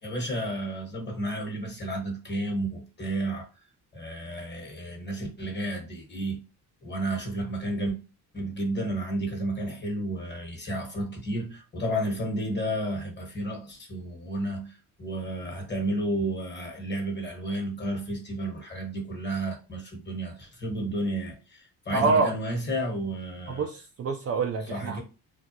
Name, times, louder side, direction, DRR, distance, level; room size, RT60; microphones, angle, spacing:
voice 1, 0.0-3.5 3.9-6.4 6.8-7.9 8.3-14.7 15.0-23.6 24.7-25.0, right 1 dB, 25° left, 1.2 m, -32 dB
voice 2, 21.9-22.3 23.5-25.0, right 4 dB, 40° right, 0.4 m, -26 dB
2.3 x 2.0 x 2.8 m
supercardioid pair, 70°, 40 cm